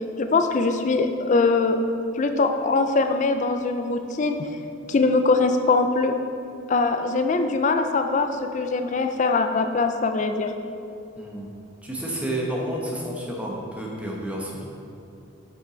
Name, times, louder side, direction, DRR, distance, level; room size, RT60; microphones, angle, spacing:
voice 1, 0.2-1.8 2.2-4.5 4.9-6.2 6.7-10.5, left 3 dB, 35° left, 7 dB, 0.3 m, -22 dB
voice 2, 11.2-11.5 11.8-14.7, right 1 dB, 5° right, -2 dB, 0.8 m, -30 dB
7.9 x 5.6 x 3.9 m, 2.6 s
head